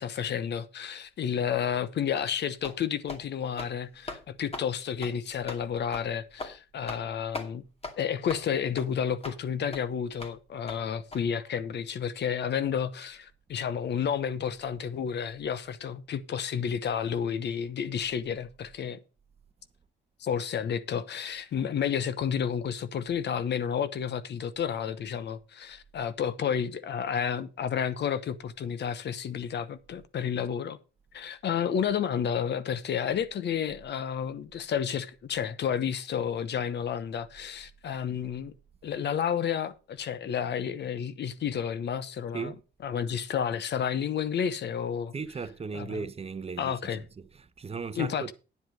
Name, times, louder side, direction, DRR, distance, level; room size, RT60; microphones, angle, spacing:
voice 1, 0.0-7.7 8.0-19.0 20.2-30.8 31.1-38.5 38.8-42.5 42.8-45.1 45.7-46.0 46.6-47.0 48.0-48.3, left 8 dB, 60° left, 1.0 m, -31 dB
sound 1, 2.2-2.3 2.6-2.8 3.1-3.2 3.5-3.7 4.1-4.2 4.5-4.7 5.0-5.1 5.5-5.6 5.9-6.1 6.4-6.5 6.9-7.1 7.3-7.5 7.8-7.9 8.3-8.4 8.8-8.9 9.2-9.4 9.7-9.8 10.2-10.3 10.7-10.8 11.1-11.2, left 3 dB, 30° left, 2.4 m, -39 dB
voice 2, 45.1-48.3, right 5 dB, 30° right, 0.9 m, -37 dB
9.8 x 7.9 x 5.2 m
cardioid pair, 90°, 20 cm